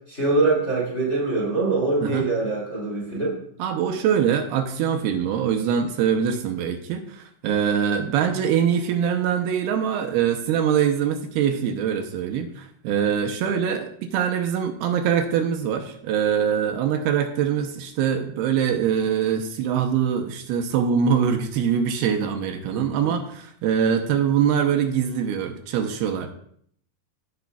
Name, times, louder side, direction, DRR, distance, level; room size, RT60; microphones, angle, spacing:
voice 1, 0.1-3.4 22.7-22.9, right 3 dB, 20° left, -6 dB, 2.2 m, -23 dB
voice 2, 3.6-26.3, right 8 dB, 85° right, 5 dB, 2.7 m, -23 dB
16.0 x 5.8 x 2.4 m, 0.64 s
omnidirectional pair, 4.5 m